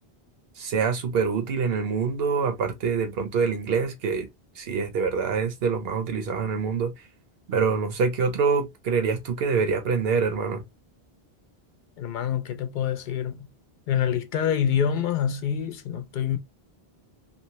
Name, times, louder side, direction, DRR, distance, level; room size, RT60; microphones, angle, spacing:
voice 1, 0.6-4.3 4.6-6.9 7.5-10.6, right 5 dB, 70° right, 1.0 m, -25 dB
voice 2, 12.0-13.5 13.9-16.4, left 8 dB, 60° left, 0.6 m, -26 dB
2.7 x 2.0 x 2.8 m
omnidirectional pair, 1.1 m